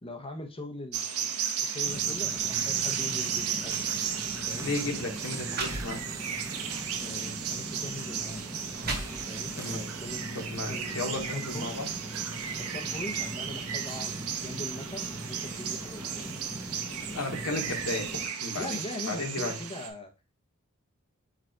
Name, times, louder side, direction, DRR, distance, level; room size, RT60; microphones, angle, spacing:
voice 1, 0.0-3.8 4.5-4.7 7.0-8.4 9.3-10.2 10.7-11.7 12.6-16.3 18.6-20.1, left 2 dB, 25° left, 4 dB, 0.8 m, -41 dB
sound 1, 0.9-19.9, right 8 dB, 85° right, 0.7 m, -34 dB
sound 2, 1.8-18.3, right 1 dB, 15° right, 0.7 m, -41 dB
sound 3, 4.4-4.5 5.1-5.2 5.5-6.4 7.0-7.1 7.9-8.0 8.5-9.6, right 3 dB, 45° right, 1.0 m, -36 dB
voice 2, 4.6-6.0 9.6-9.8 10.3-11.9 17.1-18.8 19.1-19.6, left 2 dB, 80° left, 2 dB, 1.1 m, -34 dB
4.9 x 2.4 x 4.4 m, 0.30 s
head